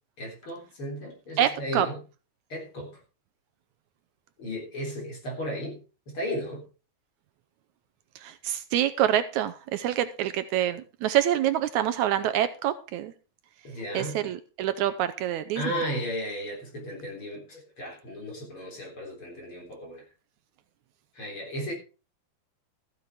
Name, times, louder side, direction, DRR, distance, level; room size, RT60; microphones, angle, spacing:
voice 1, 0.2-2.0 2.5-2.9 4.4-5.8 6.1-6.6 13.6-14.2 15.5-20.0 21.1-21.7, equal, 40° left, 0 dB, 4.5 m, -35 dB
voice 2, 1.4-1.9 8.2-13.1 13.9-15.8, right 11 dB, 75° right, 11 dB, 2.0 m, -26 dB
14.0 x 8.2 x 4.8 m, 0.35 s
omnidirectional pair, 3.6 m